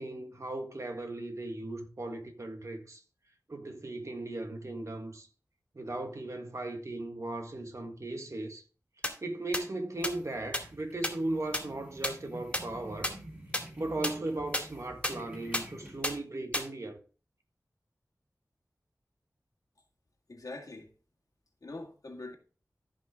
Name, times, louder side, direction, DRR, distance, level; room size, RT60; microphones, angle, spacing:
voice 1, 0.0-3.0 3.5-5.3 5.7-8.6 9.2-13.1 13.8-17.0, right 2 dB, 50° right, 1.6 m, -37 dB
sound 1, 9.0-9.1 9.5-9.6 10.0-10.1 10.5-10.6 11.0-11.1 11.5-11.6 12.0-12.1 12.5-12.6 13.0-13.1 13.5-13.6 14.0-14.1 14.5-14.6 15.0-15.1 15.5-15.6 16.0-16.1 16.5-16.6, left 1 dB, 20° left, 2.4 m, -29 dB
sound 2, 9.9-16.1, right 1 dB, 25° right, 3.6 m, -49 dB
voice 2, 20.3-20.9 21.6-22.4, left 2 dB, 65° left, 2.0 m, -43 dB
14.0 x 5.5 x 3.6 m
wide cardioid pair, 65°, 6 cm